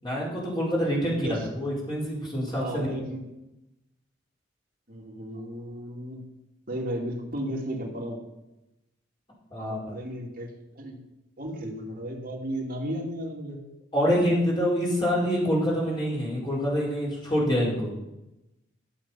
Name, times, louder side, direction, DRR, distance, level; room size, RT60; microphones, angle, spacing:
voice 1, 0.0-1.3 1.5-2.9 9.5-9.9 13.9-17.9, equal, 25° left, -5 dB, 4.6 m, -26 dB
voice 2, 1.0-1.5 2.5-3.2 4.9-6.2 6.7-8.2 9.6-11.0 11.4-13.6, right 1 dB, 50° right, -2 dB, 2.7 m, -34 dB
13.0 x 7.6 x 5.7 m, 0.92 s
head